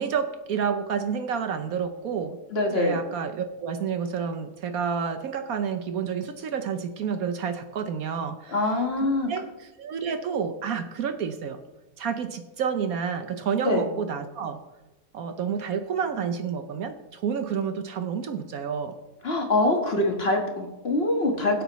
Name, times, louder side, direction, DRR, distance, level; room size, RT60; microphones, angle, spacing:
voice 1, 0.0-2.4 2.7-11.6 12.0-14.6 15.1-19.0, right 7 dB, 65° right, 8 dB, 1.1 m, -29 dB
voice 2, 2.5-3.0 8.5-9.3 13.6-13.8 19.2-21.6, left 2 dB, 40° left, 2 dB, 1.8 m, -24 dB
22.0 x 8.1 x 3.1 m, 1.1 s
omnidirectional pair, 1.7 m